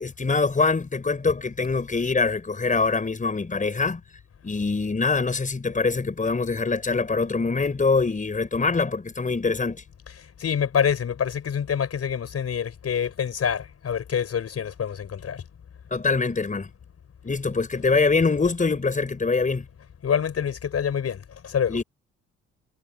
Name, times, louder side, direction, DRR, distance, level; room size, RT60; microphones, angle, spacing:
voice 1, 0.0-4.0 4.4-9.8 15.9-16.7 17.2-19.6 21.7-21.8, left 4 dB, 25° left, 5.0 m, -24 dB
voice 2, 10.4-15.4 20.0-21.2 21.4-21.8, left 8 dB, 55° left, 5.9 m, -26 dB
cardioid pair, 90°, 30 cm